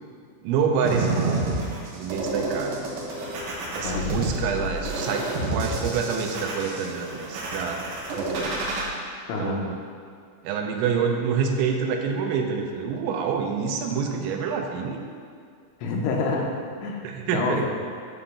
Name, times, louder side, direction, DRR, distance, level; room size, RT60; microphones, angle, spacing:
voice 1, 0.4-1.5 1.9-2.9 3.8-7.8 8.1-8.5 9.4-9.8 10.4-15.0 16.4-16.5 17.0-17.6, right 6 dB, 85° right, 3 dB, 3.1 m, -27 dB
sound 1, 0.8-8.8, right 2 dB, 70° right, 2.4 m, -29 dB
voice 2, 3.6-4.4 9.3-9.6 15.8-17.0 17.3-17.7, left 3 dB, 80° left, 0 dB, 3.1 m, -28 dB
8.8 x 3.9 x 7.0 m, 2.2 s
omnidirectional pair, 5.3 m